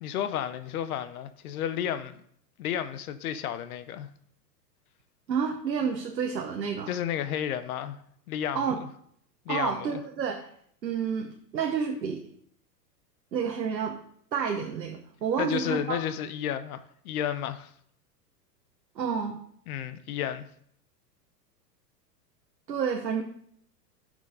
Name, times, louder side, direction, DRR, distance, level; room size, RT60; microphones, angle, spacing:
voice 1, 0.0-2.2 2.6-4.1 6.9-8.0 8.3-8.9 9.5-10.0 15.4-17.7 19.7-20.5, left 10 dB, 60° left, 0.8 m, -32 dB
voice 2, 5.3-6.9 8.5-8.8 9.5-10.5 10.8-11.3 11.5-12.2 13.3-14.0 14.3-16.0 19.0-19.4 22.7-23.2, right 6 dB, 90° right, 1.0 m, -29 dB
10.5 x 6.3 x 3.8 m
hypercardioid pair, 100°, 49 cm